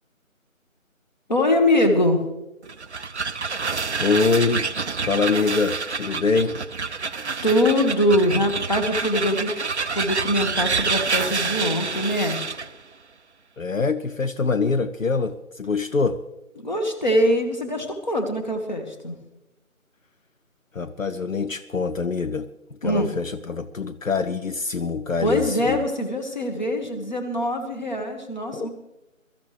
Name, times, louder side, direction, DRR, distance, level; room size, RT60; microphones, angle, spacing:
voice 1, 1.3-2.2 7.4-9.6 9.9-12.4 16.6-19.2 22.8-23.1 25.2-28.7, left 1 dB, 35° left, 4 dB, 1.7 m, -23 dB
sound 1, 2.6-12.7, right 4 dB, 55° right, 0.6 m, -28 dB
voice 2, 3.6-4.7 5.1-6.6 13.6-16.2 20.7-22.5 22.8-25.8 28.5-28.7, left 4 dB, 70° left, 9 dB, 0.9 m, -24 dB
23.0 x 13.5 x 3.3 m, 0.98 s
figure-of-eight pair, 165°, 41 cm